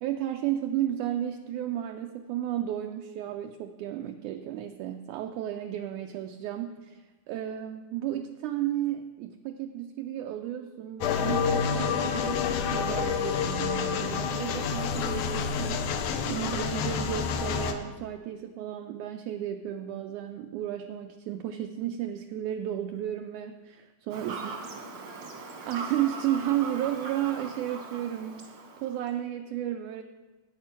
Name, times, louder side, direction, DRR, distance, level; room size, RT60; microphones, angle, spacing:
voice 1, 0.0-7.0 7.3-12.5 12.7-24.5 25.7-30.0, right 11 dB, 85° right, 5 dB, 1.7 m, -33 dB
sound 1, 11.0-17.7, left 6 dB, 75° left, 2.0 m, -28 dB
Fowl / Bird vocalization bird call bird song, 24.1-29.1, right 4 dB, 55° right, 1.3 m, -40 dB
10.5 x 8.7 x 5.9 m, 1.2 s
omnidirectional pair, 4.1 m